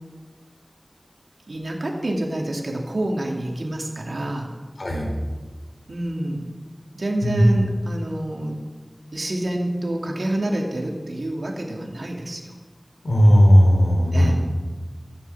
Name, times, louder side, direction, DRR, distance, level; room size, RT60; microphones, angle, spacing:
voice 1, 1.5-4.5 5.9-6.4 6.9-8.6 9.1-12.4 14.1-14.3, right 1 dB, 90° right, 0 dB, 2.5 m, -27 dB
voice 2, 13.0-14.3, equal, 90° left, 1 dB, 3.7 m, -15 dB
14.5 x 11.0 x 7.2 m, 1.4 s
wide cardioid pair, 45°, 0 cm